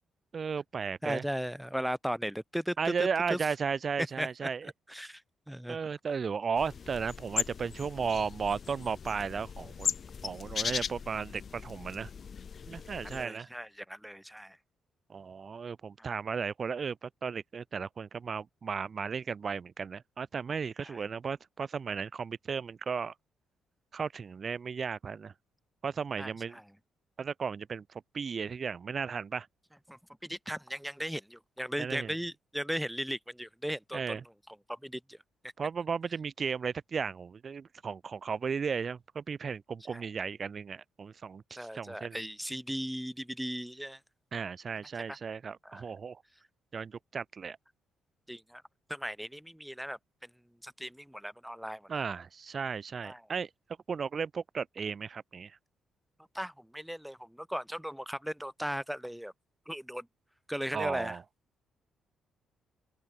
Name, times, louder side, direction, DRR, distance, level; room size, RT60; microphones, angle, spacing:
voice 1, 0.3-1.2 2.8-4.7 5.7-9.9 10.2-12.1 12.7-13.5 15.1-23.1 23.9-25.3 25.8-26.6 27.2-29.5 31.8-32.2 33.9-34.2 35.6-42.2 44.3-46.2 46.7-47.6 51.9-53.5 53.9-55.6 60.7-61.2, right 6 dB, 40° right, 1.0 m, -35 dB
voice 2, 1.0-2.9 3.3-3.4 4.2-4.5 4.9-5.2 5.5-5.8 12.7-14.6 20.9-21.0 26.2-26.6 29.9-34.2 34.7-35.2 39.9-40.0 41.5-44.0 45.6-45.8 48.3-48.6 48.9-50.0 50.6-52.0 53.0-53.2 56.3-59.3 59.7-60.1 60.5-61.2, equal, ahead, 1.3 m, -37 dB
sound 1, 6.5-13.2, left 6 dB, 45° left, 0.4 m, -38 dB
open air
cardioid pair, 90°, 0 cm